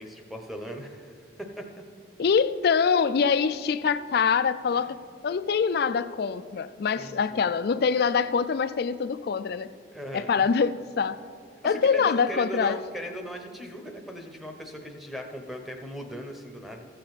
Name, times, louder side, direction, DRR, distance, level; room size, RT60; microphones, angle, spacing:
voice 1, 0.0-1.7 4.7-4.9 7.0-7.5 9.9-10.3 11.6-16.9, equal, ahead, 2 dB, 0.8 m, -38 dB
voice 2, 2.2-9.7 10.1-11.2 11.6-12.8, left 6 dB, 55° left, 14 dB, 0.4 m, -24 dB
15.0 x 6.7 x 4.1 m, 2.1 s
head